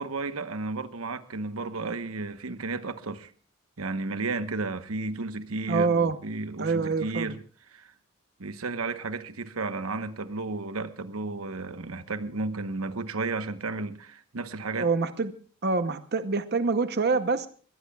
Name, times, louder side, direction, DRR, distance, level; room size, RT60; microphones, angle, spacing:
voice 1, 0.0-3.3 3.8-7.4 7.7-7.9 8.4-14.9, right 3 dB, 85° right, 1.1 m, -33 dB
voice 2, 5.7-6.2 6.6-7.3 14.8-15.3 15.6-17.5, right 4 dB, 50° right, 0.8 m, -26 dB
23.0 x 19.0 x 2.3 m
head